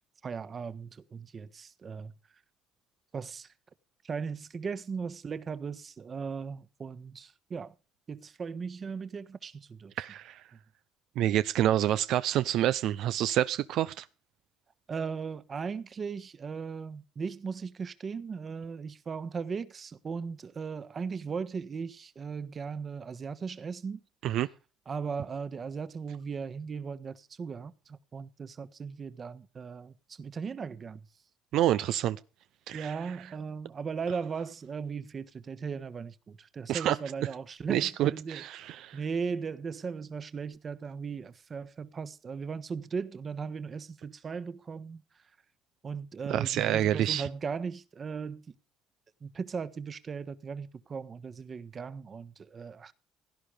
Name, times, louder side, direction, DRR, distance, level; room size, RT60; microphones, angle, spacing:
voice 1, 0.2-2.1 3.1-3.5 4.0-7.7 8.1-9.9 10.5-10.6 14.9-24.0 24.9-31.0 32.7-38.4 38.9-45.2 45.8-48.5 49.2-52.9, right 5 dB, 40° right, 1.4 m, -37 dB
voice 2, 10.0-10.4 11.2-14.1 24.2-24.5 31.5-32.2 32.7-32.9 36.7-37.0 37.7-39.0 46.3-47.3, right 12 dB, 75° right, 0.7 m, -27 dB
17.0 x 11.0 x 5.0 m
cardioid pair, 90°, 0 cm